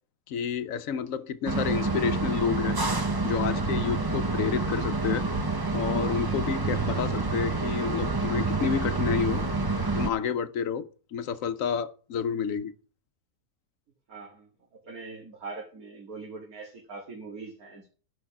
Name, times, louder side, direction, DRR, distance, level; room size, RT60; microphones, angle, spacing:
voice 1, 0.3-2.8 3.2-5.3 5.7-9.4 9.9-12.7, left 7 dB, 65° left, 1.1 m, -30 dB
sound 1, 1.5-10.1, right 3 dB, 20° right, 0.7 m, -28 dB
voice 2, 14.1-17.9, right 3 dB, 75° right, 2.5 m, -42 dB
12.0 x 5.7 x 5.9 m
omnidirectional pair, 1.6 m